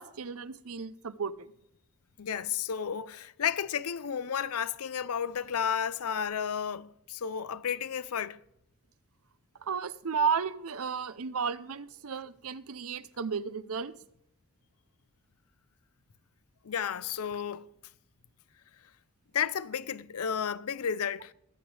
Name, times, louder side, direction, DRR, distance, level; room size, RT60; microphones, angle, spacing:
voice 1, 0.0-1.5 9.6-14.0, right 6 dB, 80° right, 0.7 m, -33 dB
voice 2, 2.2-8.4 16.6-17.7 19.3-21.3, left 8 dB, 85° left, 0.6 m, -32 dB
22.0 x 8.0 x 3.4 m
head